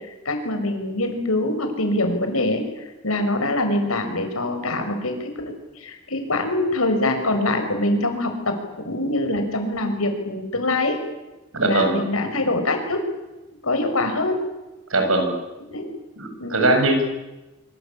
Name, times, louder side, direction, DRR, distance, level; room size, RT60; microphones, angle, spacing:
voice 1, 0.3-2.6 3.0-11.0 11.6-13.0 13.6-14.4 15.7-15.9 16.4-16.7, left 2 dB, 90° left, 6 dB, 5.8 m, -24 dB
voice 2, 11.5-12.0 14.9-15.4 16.2-17.0, right 2 dB, 80° right, 5 dB, 7.0 m, -20 dB
26.0 x 25.0 x 8.7 m, 1.0 s
head